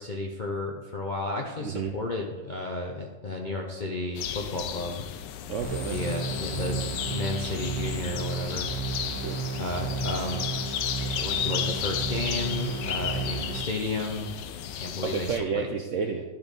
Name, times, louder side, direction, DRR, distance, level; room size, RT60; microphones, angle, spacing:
voice 1, 0.0-5.0 5.9-8.7 9.6-10.5 11.1-14.3 14.7-15.7, left 2 dB, 50° left, 0 dB, 0.5 m, -32 dB
voice 2, 1.6-1.9 5.5-6.0 9.2-9.4 15.0-16.2, right 6 dB, 70° right, 4 dB, 0.7 m, -30 dB
sound 1, 4.1-15.4, left 10 dB, 85° left, 1.3 m, -34 dB
sound 2, 5.6-13.6, right 5 dB, 90° right, 1.7 m, -33 dB
12.0 x 4.2 x 5.2 m, 1.2 s
omnidirectional pair, 1.9 m